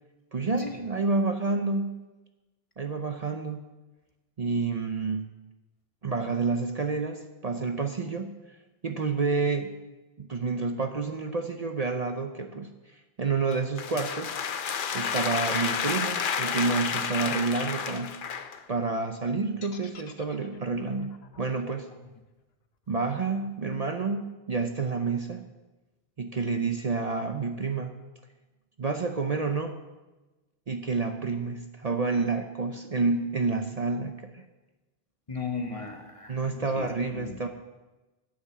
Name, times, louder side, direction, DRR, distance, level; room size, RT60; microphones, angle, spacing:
voice 1, 0.3-2.0 2.8-3.6 4.4-5.3 6.0-8.4 8.8-9.7 10.2-12.7 13.2-14.3 14.9-18.1 18.7-21.9 22.9-25.4 26.2-27.9 28.8-29.8 30.7-34.4 36.3-37.5, right 4 dB, 45° right, 6 dB, 0.7 m, -29 dB
sound 1, 13.5-18.6, left 7 dB, 60° left, 0.8 m, -30 dB
sound 2, 19.6-23.7, left 6 dB, 75° left, 1.2 m, -52 dB
voice 2, 35.3-37.4, left 4 dB, 35° left, 4 dB, 1.2 m, -37 dB
9.8 x 8.6 x 7.4 m, 1.1 s
omnidirectional pair, 1.0 m